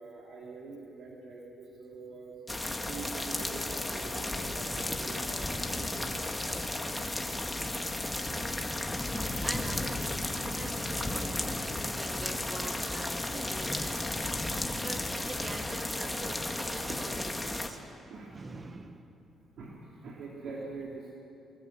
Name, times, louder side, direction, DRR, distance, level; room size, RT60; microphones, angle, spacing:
voice 1, 0.0-2.4 2.9-6.9 14.1-15.1 16.9-17.0 18.1-18.4 19.6-21.1, right 4 dB, 65° right, -3 dB, 3.8 m, -45 dB
sound 1, 2.5-17.7, left 1 dB, 10° left, 2.0 m, -34 dB
voice 2, 8.8-17.8 18.3-19.2, right 3 dB, 30° right, 8 dB, 1.7 m, -45 dB
24.5 x 21.5 x 7.9 m, 2.8 s
cardioid pair, 90°, 0 cm